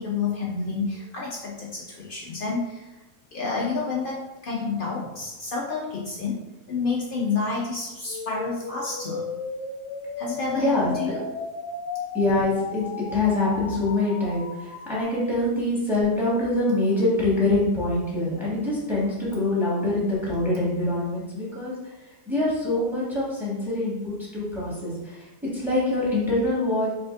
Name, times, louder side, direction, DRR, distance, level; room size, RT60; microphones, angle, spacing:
voice 1, 0.0-2.9 3.3-6.4 6.7-9.3 10.2-11.2, left 4 dB, 85° left, -3 dB, 0.4 m, -29 dB
sound 1, 8.1-15.0, left 4 dB, 65° left, 0.8 m, -35 dB
voice 2, 10.6-10.9 12.1-21.7 22.3-25.2 25.5-26.9, left 2 dB, ahead, -7 dB, 1.3 m, -24 dB
5.0 x 3.2 x 2.5 m, 1.0 s
omnidirectional pair, 1.7 m